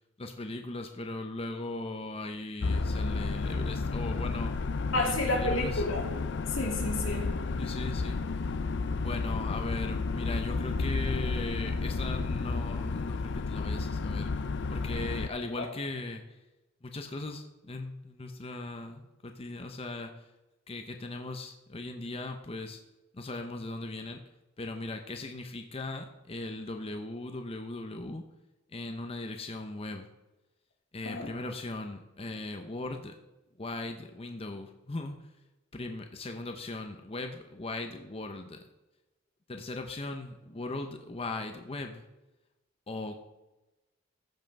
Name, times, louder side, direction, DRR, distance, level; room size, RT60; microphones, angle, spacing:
voice 1, 0.2-4.6 4.9-5.8 7.6-8.4 9.0-14.3 14.7-16.2 16.8-20.2 20.7-22.8 23.1-24.2 24.6-28.2 28.7-30.1 30.9-33.1 33.6-35.2 35.7-38.6 39.5-42.0 42.9-43.2, left 2 dB, 30° left, 5 dB, 0.7 m, -38 dB
sound 1, 2.6-15.3, left 3 dB, 65° left, 0.5 m, -32 dB
voice 2, 4.9-6.0 6.5-7.3 15.6-15.7 31.0-31.3, left 2 dB, 90° left, 0 dB, 2.6 m, -30 dB
14.5 x 5.7 x 5.3 m, 1.0 s
head